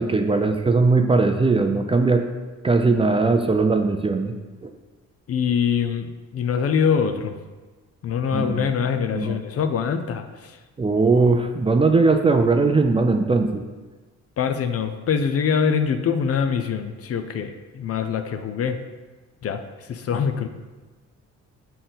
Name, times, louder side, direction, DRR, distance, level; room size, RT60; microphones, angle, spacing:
voice 1, 0.0-2.2 2.6-4.3 4.6-4.7 8.3-8.7 9.1-9.4 10.8-13.6, right 3 dB, 20° right, 6 dB, 0.4 m, -19 dB
voice 2, 5.3-7.4 8.0-10.6 14.4-18.8 19.4-20.5, left 7 dB, 50° left, 8 dB, 0.6 m, -24 dB
6.5 x 4.1 x 3.9 m, 1.2 s
cardioid pair, 90°, 30 cm